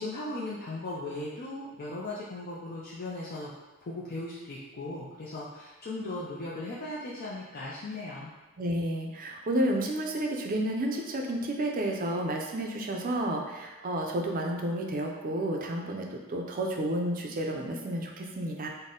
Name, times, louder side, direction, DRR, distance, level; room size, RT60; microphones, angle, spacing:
voice 1, 0.0-3.5 3.8-8.3, left 2 dB, 45° left, -6 dB, 0.5 m, -37 dB
voice 2, 8.6-18.7, right 1 dB, 40° right, 1 dB, 0.5 m, -31 dB
4.0 x 2.1 x 3.7 m, 1.2 s
head